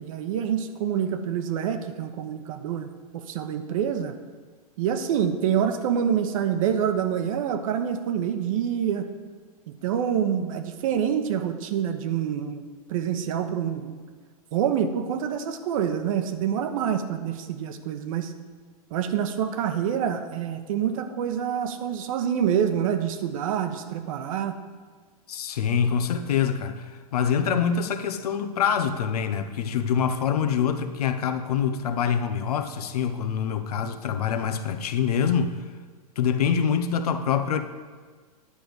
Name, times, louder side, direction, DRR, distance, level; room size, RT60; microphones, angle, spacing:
voice 1, 0.0-4.1 4.8-9.1 9.8-13.9 14.5-18.3 18.9-24.6, right 8 dB, 60° right, 1.1 m, -26 dB
voice 2, 25.3-35.6 36.2-37.6, left 7 dB, 75° left, 0.9 m, -25 dB
10.0 x 5.2 x 7.8 m
hypercardioid pair, 125°, 20 cm